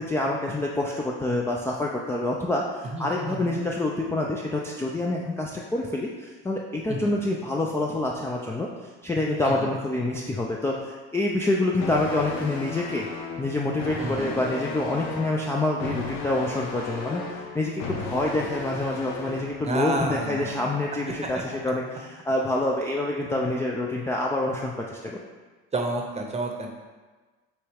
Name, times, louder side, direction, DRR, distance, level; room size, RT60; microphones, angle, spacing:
voice 1, 0.0-8.7 9.0-13.1 13.4-25.2, left 2 dB, 10° left, -2 dB, 0.4 m, -27 dB
voice 2, 2.9-3.6 6.9-7.2 9.4-9.7 14.0-14.5 19.6-20.8 21.3-21.4 25.7-26.7, right 2 dB, 20° right, 2 dB, 0.8 m, -30 dB
sound 1, 11.8-19.8, left 3 dB, 65° left, 0.8 m, -35 dB
6.8 x 2.3 x 3.4 m, 1.3 s
supercardioid pair, 90°, 30 cm